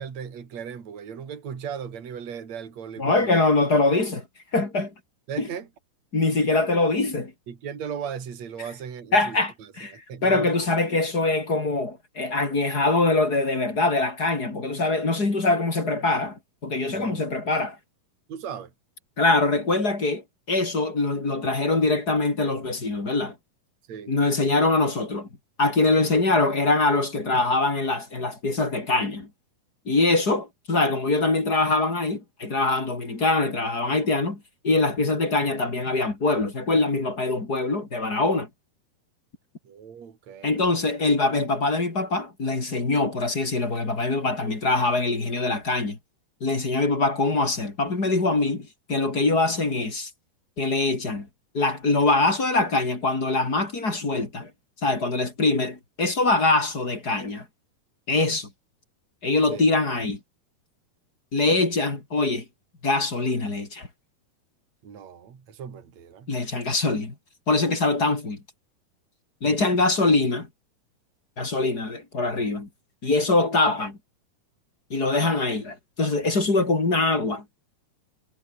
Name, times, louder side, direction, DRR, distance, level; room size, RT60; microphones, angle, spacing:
voice 1, 0.0-3.3 5.3-5.7 7.5-10.5 16.9-17.4 18.3-18.7 23.9-24.1 39.6-40.7 59.5-59.7 64.8-66.3, right 7 dB, 45° right, 4.3 m, -37 dB
voice 2, 3.0-4.2 4.5-4.9 5.4-5.5 6.1-7.3 9.1-17.8 19.2-20.2 20.5-23.4 24.1-25.3 25.6-29.3 29.9-38.5 40.4-46.0 46.4-50.1 50.6-51.3 51.5-54.5 54.8-57.5 58.1-58.5 59.2-60.2 61.3-62.4 62.8-63.9 66.3-67.1 67.5-68.4 69.4-70.5 71.4-72.7 73.0-74.0 74.9-77.4, left 3 dB, 25° left, 3.7 m, -23 dB
omnidirectional pair, 4.5 m